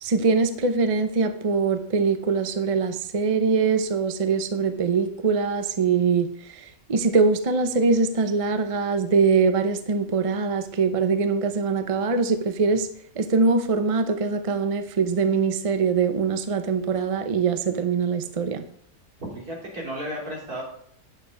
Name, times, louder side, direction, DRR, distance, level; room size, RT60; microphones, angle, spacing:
voice 1, 0.0-12.9 13.2-18.6, right 4 dB, 35° right, 8 dB, 0.6 m, -23 dB
voice 2, 19.2-20.6, equal, 85° right, -3 dB, 3.9 m, -34 dB
9.3 x 6.6 x 5.1 m, 0.65 s
omnidirectional pair, 1.6 m